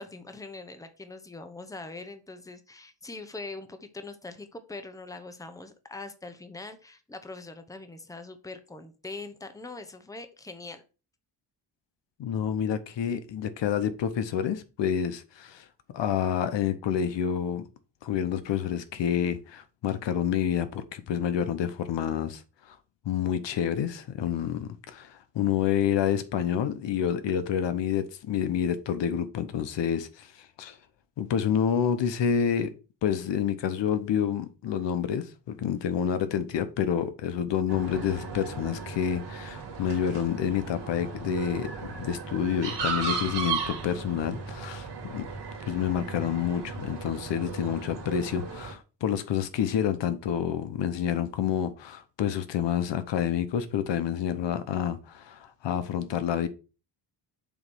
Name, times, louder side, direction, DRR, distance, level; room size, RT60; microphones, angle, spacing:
voice 1, 0.0-10.8, left 3 dB, 10° left, 0.9 m, -42 dB
voice 2, 12.2-15.7 15.9-17.6 18.0-22.4 22.7-22.8 23.0-30.8 31.2-32.7 33.0-45.3 45.7-56.5, left 9 dB, 70° left, 0.9 m, -28 dB
sound 1, 37.7-48.7, right 4 dB, 65° right, 2.4 m, -36 dB
7.1 x 3.1 x 5.4 m
cardioid pair, 100°, 45 cm